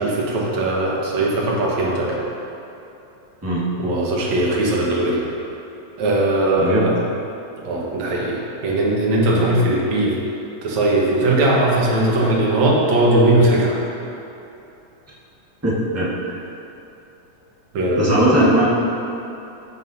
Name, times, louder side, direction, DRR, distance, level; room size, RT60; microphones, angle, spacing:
voice 1, 0.0-2.2 3.8-5.2 6.0-7.0 7.6-10.2 10.6-13.8 17.7-18.5, right 1 dB, 65° right, -4 dB, 2.6 m, -19 dB
voice 2, 15.6-16.3 18.0-18.6, right 1 dB, 15° right, -7 dB, 0.4 m, -19 dB
15.0 x 7.6 x 2.8 m, 2.9 s
omnidirectional pair, 3.5 m